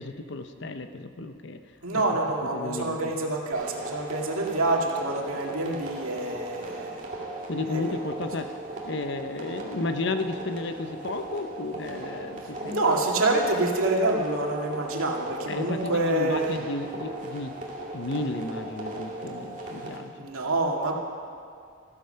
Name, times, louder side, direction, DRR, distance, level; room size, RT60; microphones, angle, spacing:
voice 1, 0.0-1.6 1.9-2.2 2.5-3.1 7.5-8.5 8.9-12.8 15.5-17.6 17.9-20.1, left 2 dB, 55° left, 9 dB, 0.8 m, -33 dB
voice 2, 1.8-7.0 7.7-8.0 12.6-16.6 20.2-20.9, right 2 dB, 90° right, 0 dB, 2.2 m, -27 dB
sound 1, 3.5-20.0, right 2 dB, 35° right, 2.3 m, -38 dB
15.0 x 13.0 x 5.7 m, 2.3 s
head